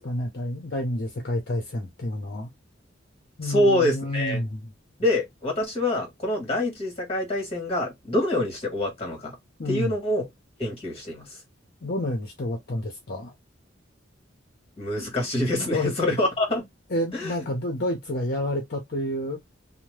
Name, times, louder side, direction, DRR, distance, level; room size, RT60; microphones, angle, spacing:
voice 1, 0.0-2.5 3.4-4.7 9.6-10.0 11.8-13.3 15.6-16.1 16.9-19.4, left 1 dB, 60° left, 0.7 m, -29 dB
voice 2, 3.4-4.4 5.0-9.3 9.6-10.2 10.6-11.2 14.8-16.6 17.1-17.3, left 1 dB, 30° left, 1.5 m, -25 dB
2.8 x 2.1 x 3.1 m
head